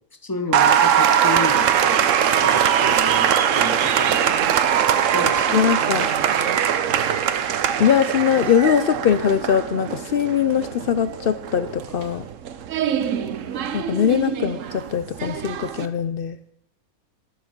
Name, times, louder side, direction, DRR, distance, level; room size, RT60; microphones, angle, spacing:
voice 1, 0.2-2.1 2.4-3.3 3.5-4.6 5.0-5.6 6.8-6.9, left 3 dB, 15° left, 7 dB, 0.9 m, -31 dB
Applause, 0.5-15.9, right 9 dB, 65° right, 1.0 m, -21 dB
voice 2, 5.5-6.1 7.8-12.3 13.7-16.4, left 8 dB, 75° left, 12 dB, 0.5 m, -21 dB
12.5 x 6.9 x 5.9 m, 0.77 s
omnidirectional pair, 1.5 m